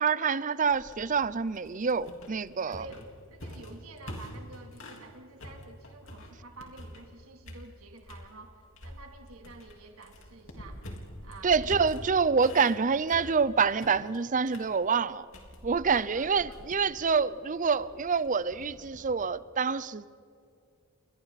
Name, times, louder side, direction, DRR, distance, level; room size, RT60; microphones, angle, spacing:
voice 1, 0.0-2.9 11.4-15.2 15.6-20.1, right 5 dB, 40° right, 0.6 m, -27 dB
sound 1, 0.7-5.1 5.4-7.2 7.4-8.3 8.8-19.2, left 1 dB, 65° left, 3.8 m, -46 dB
voice 2, 2.7-10.8 11.2-11.8 16.1-16.6, right 3 dB, 85° right, 3.1 m, -49 dB
29.5 x 24.5 x 4.2 m
head